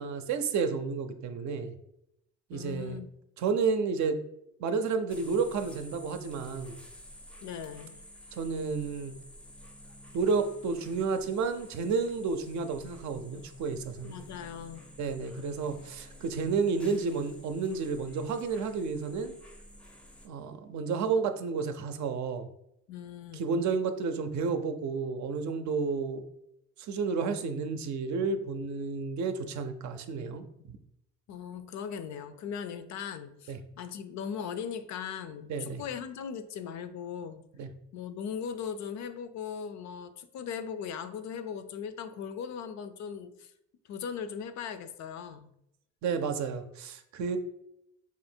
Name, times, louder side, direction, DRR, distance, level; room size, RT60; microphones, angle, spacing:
voice 1, 0.0-1.7 2.5-3.0 3.4-4.2 4.6-6.8 8.3-9.1 10.1-14.2 15.0-19.4 20.2-22.5 23.3-26.2 26.8-30.8 33.5-33.6 35.5-35.8 37.6-37.7 46.0-47.4, right 5 dB, 70° right, 8 dB, 0.5 m, -31 dB
voice 2, 2.5-3.1 7.4-8.0 14.0-14.8 22.9-23.5 31.3-37.4 37.9-43.5 43.9-45.5, left 7 dB, 65° left, 11 dB, 0.4 m, -39 dB
sound 1, 5.1-20.3, left 1 dB, 5° left, 0.4 m, -51 dB
2.8 x 2.5 x 4.3 m, 0.81 s
cardioid pair, 90°, 30 cm